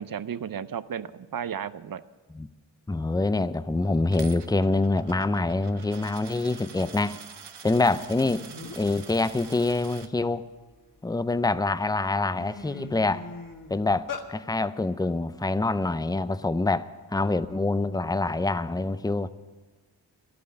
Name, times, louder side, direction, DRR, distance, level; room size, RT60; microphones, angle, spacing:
voice 1, 0.0-2.0 8.5-8.6, right 8 dB, 55° right, 15 dB, 0.7 m, -34 dB
voice 2, 2.9-7.2 7.6-8.4 8.7-10.4 11.0-13.3 13.7-19.3, left 2 dB, 10° left, 14 dB, 0.5 m, -26 dB
Coin (dropping), 4.1-10.1, right 6 dB, 75° right, 1.0 m, -46 dB
sound 1, 8.6-9.0 9.4-11.0 11.6-11.7 12.0-14.3, left 4 dB, 50° left, 1.7 m, -40 dB
12.5 x 8.6 x 9.8 m, 1.3 s
cardioid pair, 50°, 42 cm